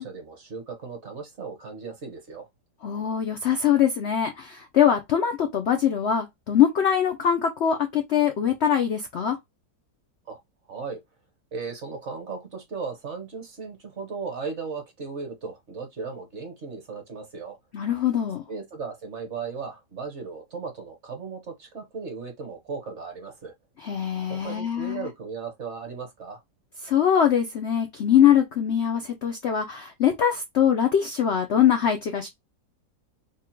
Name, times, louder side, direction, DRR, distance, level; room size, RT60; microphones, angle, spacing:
voice 1, 0.0-2.5 10.3-10.4 10.7-11.0 11.5-17.6 18.5-23.5 24.3-26.4, right 5 dB, 50° right, 1.2 m, -36 dB
voice 2, 2.8-9.4 17.7-18.4 23.8-25.1 26.8-32.3, left 9 dB, 65° left, 0.6 m, -22 dB
3.5 x 2.3 x 4.4 m
omnidirectional pair, 1.8 m